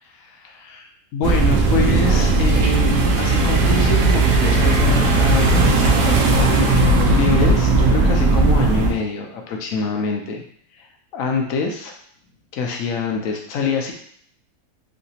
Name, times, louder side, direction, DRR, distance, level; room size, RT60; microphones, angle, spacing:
voice 1, 0.2-10.4 10.8-10.9 11.1-11.9 12.5-13.9, left 4 dB, 70° left, 2 dB, 0.9 m, -25 dB
sound 1, 1.2-8.9, right 3 dB, 70° right, 1.0 m, -16 dB
3.3 x 2.8 x 2.7 m, 0.63 s
omnidirectional pair, 1.6 m